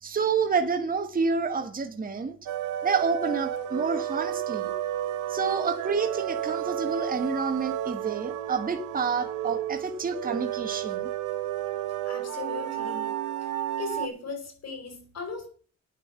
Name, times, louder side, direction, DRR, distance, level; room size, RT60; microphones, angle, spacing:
voice 1, 0.0-2.4 2.8-4.7 5.3-11.1, right 5 dB, 30° right, 1.5 m, -28 dB
sound 1, 2.5-14.1, right 11 dB, 75° right, 1.1 m, -32 dB
voice 2, 12.0-13.1 13.4-13.5 13.8-15.5, left 4 dB, 55° left, 4.5 m, -37 dB
9.3 x 8.3 x 7.1 m
cardioid pair, 90°, 30 cm